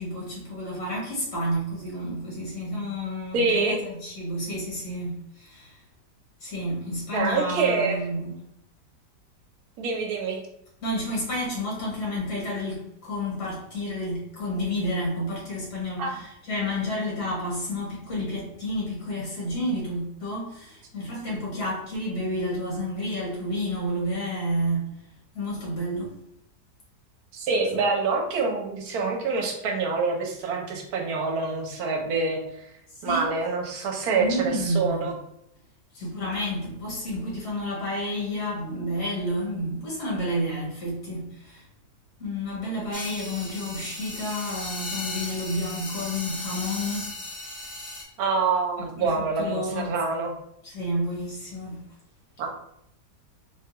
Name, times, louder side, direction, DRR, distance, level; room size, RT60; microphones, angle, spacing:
voice 1, 0.0-5.8 6.4-8.4 10.8-24.9 25.3-26.1 32.9-33.3 34.2-35.1 35.9-41.6 42.2-47.1 47.6-47.7 48.8-50.0 50.6-51.8, equal, 70° left, -5 dB, 1.8 m, -30 dB
voice 2, 3.3-3.8 7.1-8.0 9.8-10.4 16.0-16.1 27.3-32.7 33.0-35.1 48.2-50.3 52.4-52.5, right 4 dB, 70° right, 1 dB, 1.1 m, -26 dB
sound 1, 42.9-48.0, left 2 dB, 55° left, 0.9 m, -36 dB
3.4 x 2.2 x 2.8 m, 0.76 s
omnidirectional pair, 1.8 m